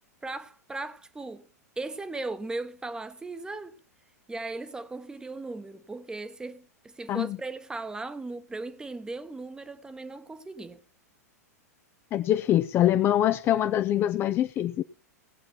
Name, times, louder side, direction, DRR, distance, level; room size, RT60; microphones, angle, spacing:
voice 1, 0.2-1.5 1.8-3.8 4.3-10.8, right 3 dB, 10° right, 1.0 m, -37 dB
voice 2, 12.1-14.8, left 12 dB, 25° left, 0.5 m, -24 dB
18.0 x 7.4 x 4.5 m
figure-of-eight pair, 95°, 9 cm